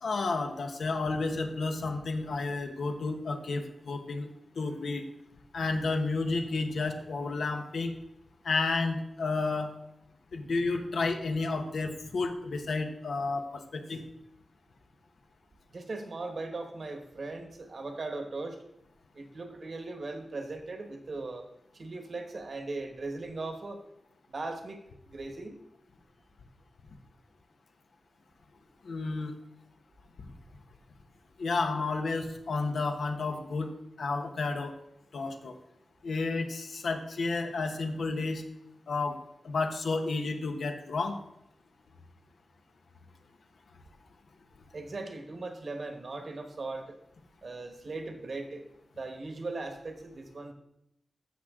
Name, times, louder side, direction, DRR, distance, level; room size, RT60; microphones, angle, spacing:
voice 1, 0.0-4.3 4.5-5.1 5.5-7.9 8.4-9.7 10.3-14.0 28.8-29.3 31.4-33.7 34.0-34.7 35.1-35.6 36.0-38.4 38.9-39.2 39.4-41.2, left 3 dB, 75° left, 5 dB, 1.1 m, -31 dB
voice 2, 15.7-18.6 19.1-21.5 21.7-23.8 24.3-24.8 25.0-25.6 44.7-47.0 47.4-48.6 49.0-50.5, right 3 dB, 50° right, 6 dB, 1.3 m, -38 dB
14.5 x 6.1 x 3.7 m, 0.84 s
wide cardioid pair, 125°, 0 cm